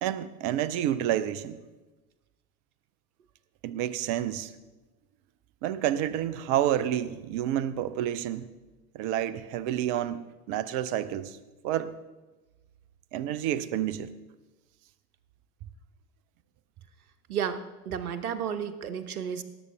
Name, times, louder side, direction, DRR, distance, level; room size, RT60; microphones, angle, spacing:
voice 1, 0.0-1.6 3.6-4.5 5.6-8.5 8.9-11.4 11.6-11.9 13.1-14.1, right 11 dB, 30° right, 15 dB, 0.5 m, -29 dB
voice 2, 17.3-19.4, right 8 dB, 65° right, 10 dB, 1.1 m, -32 dB
17.5 x 7.9 x 3.4 m, 1.1 s
figure-of-eight pair, 90°, 47 cm